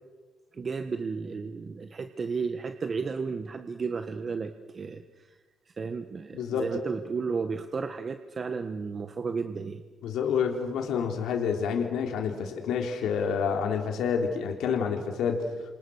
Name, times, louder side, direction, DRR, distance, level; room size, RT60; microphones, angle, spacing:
voice 1, 0.5-5.4 5.7-9.8, right 5 dB, 40° right, 8 dB, 1.4 m, -33 dB
voice 2, 6.3-6.7 10.0-15.4, left 6 dB, 80° left, 3 dB, 3.5 m, -28 dB
28.5 x 26.5 x 6.5 m, 1.4 s
cardioid pair, 90°, 0 cm